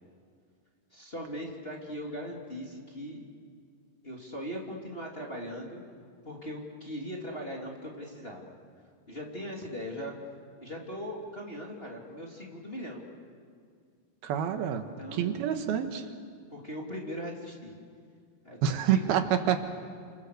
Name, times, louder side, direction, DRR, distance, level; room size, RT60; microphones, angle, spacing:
voice 1, 0.9-3.3 4.0-5.8 6.2-8.5 9.1-10.1 10.6-13.0 15.0-15.4 16.5-17.8 18.4-19.2, equal, 15° left, -2 dB, 2.7 m, -39 dB
voice 2, 14.2-14.9 15.1-16.1 18.6-19.6, right 9 dB, 85° right, 6 dB, 3.3 m, -27 dB
30.0 x 27.5 x 6.8 m, 2.2 s
omnidirectional pair, 4.3 m